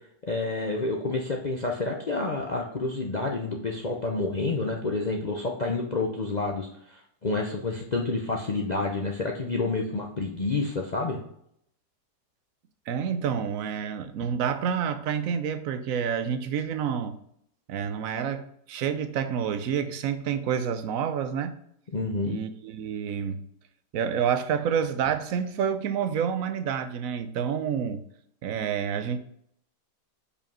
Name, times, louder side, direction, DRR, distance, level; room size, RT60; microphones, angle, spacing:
voice 1, 0.3-11.2 21.9-22.4, left 3 dB, 65° left, 0.4 m, -29 dB
voice 2, 12.9-17.2 17.7-21.6 22.2-23.4 23.9-28.0 28.4-29.2, right 7 dB, 65° right, 0.9 m, -28 dB
5.2 x 5.0 x 5.4 m
omnidirectional pair, 1.9 m